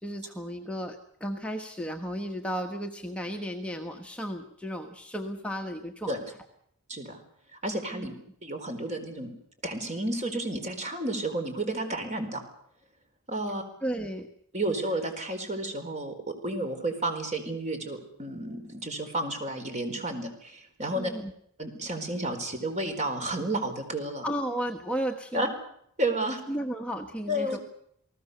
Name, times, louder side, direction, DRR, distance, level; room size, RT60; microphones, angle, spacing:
voice 1, 0.0-6.2 7.9-8.1 13.8-14.3 20.9-21.3 24.2-25.5 26.5-27.6, equal, 5° left, 3 dB, 1.3 m, -34 dB
voice 2, 7.6-8.1 8.4-9.3 9.6-12.4 13.3-13.6 14.5-21.1 21.6-24.3 25.3-25.5 26.0-26.4 27.3-27.6, right 1 dB, 35° right, 6 dB, 4.4 m, -31 dB
29.5 x 19.0 x 6.9 m, 0.68 s
head